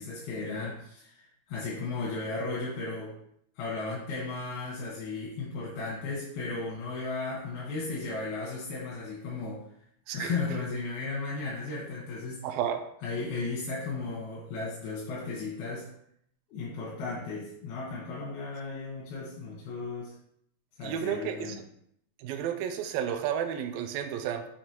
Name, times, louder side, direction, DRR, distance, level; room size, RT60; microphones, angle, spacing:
voice 1, 0.0-3.2 3.6-9.6 10.1-12.5 13.0-15.9 16.5-20.1 20.8-21.6, left 3 dB, 90° left, -5 dB, 3.1 m, -35 dB
voice 2, 12.4-12.9 20.8-21.6 22.2-24.5, right 9 dB, 80° right, 6 dB, 2.1 m, -32 dB
7.3 x 3.0 x 4.4 m, 0.72 s
omnidirectional pair, 4.4 m